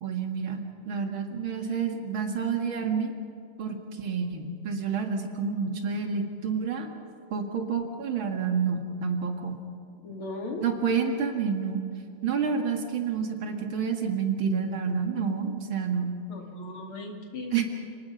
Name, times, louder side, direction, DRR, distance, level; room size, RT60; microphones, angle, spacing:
voice 1, 0.0-3.1 3.6-6.9 7.3-9.6 10.6-11.8 12.2-16.2 17.5-17.6, right 6 dB, 75° right, 4 dB, 2.8 m, -29 dB
voice 2, 10.0-10.6 16.3-17.6, left 2 dB, 85° left, 1 dB, 3.4 m, -37 dB
29.5 x 19.5 x 5.7 m, 2.5 s
omnidirectional pair, 2.2 m